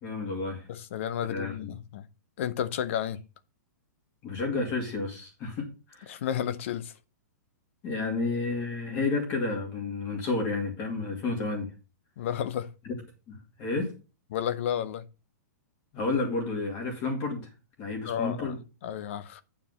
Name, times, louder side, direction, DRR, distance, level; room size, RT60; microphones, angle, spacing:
voice 1, 0.0-0.7 1.3-1.7 4.2-6.2 7.8-11.7 12.8-12.9 13.3-14.0 15.9-17.5 17.8-18.6, left 3 dB, 25° left, 2.5 m, -31 dB
voice 2, 0.7-2.1 2.4-3.2 6.1-6.9 12.2-12.7 14.3-15.1 18.0-18.6 18.8-19.4, left 9 dB, 45° left, 0.7 m, -32 dB
9.5 x 4.7 x 5.5 m
hypercardioid pair, 170°, 10 cm